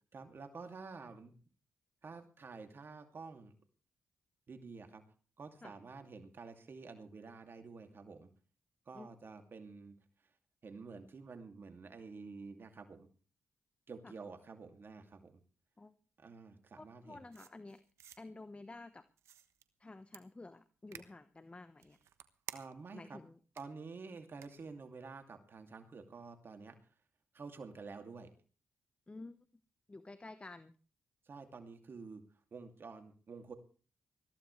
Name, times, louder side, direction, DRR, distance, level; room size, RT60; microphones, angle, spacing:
voice 1, 0.1-1.3 2.0-3.5 4.5-5.0 5.4-8.3 8.9-10.3 10.6-13.1 13.9-15.4 16.2-17.2 22.5-23.2 23.6-26.8 27.3-28.3 31.3-32.2 32.5-33.5, right 4 dB, 55° right, 7 dB, 2.5 m, -50 dB
voice 2, 16.8-17.8 18.2-19.1 19.8-22.0 22.9-23.4 29.1-29.4 29.9-30.8, left 2 dB, 25° left, 12 dB, 1.1 m, -51 dB
sound 1, 17.3-18.2 19.2-19.6 20.1-20.2 20.9-21.1 21.8-22.9 23.6-23.7 24.4-24.5, right 10 dB, 85° right, 1.1 m, -51 dB
20.5 x 14.5 x 3.3 m, 0.38 s
supercardioid pair, 50°, 5 cm